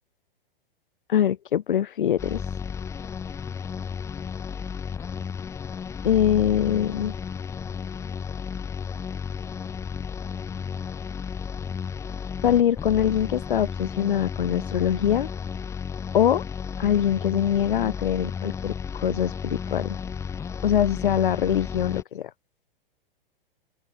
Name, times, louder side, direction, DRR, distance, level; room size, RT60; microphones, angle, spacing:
voice 1, 1.1-2.4 6.0-7.1 12.4-15.3 16.1-16.4 16.8-20.0 20.6-22.3, left 10 dB, 60° left, 1.5 m, -23 dB
sound 1, 2.2-22.0, left 6 dB, 10° left, 0.8 m, -33 dB
open air
figure-of-eight pair, 110°, 29 cm